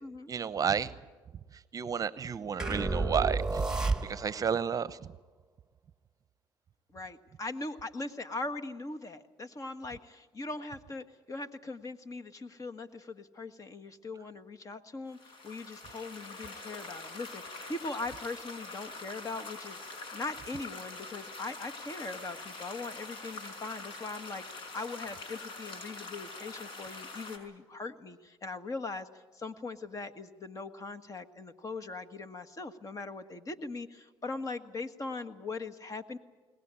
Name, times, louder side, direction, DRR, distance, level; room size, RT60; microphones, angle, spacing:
voice 1, 0.3-0.9 1.5-3.7 4.0-5.0, right 7 dB, 35° right, 15 dB, 0.8 m, -31 dB
sound 1, 2.6-4.5, right 3 dB, 5° right, 1.9 m, -31 dB
voice 2, 6.9-19.8 20.1-36.2, left 3 dB, 35° left, 10 dB, 1.6 m, -40 dB
sound 2, 15.1-27.4, left 3 dB, 60° left, 5.3 m, -44 dB
22.0 x 20.0 x 9.1 m, 1.3 s
supercardioid pair, 85°, 10 cm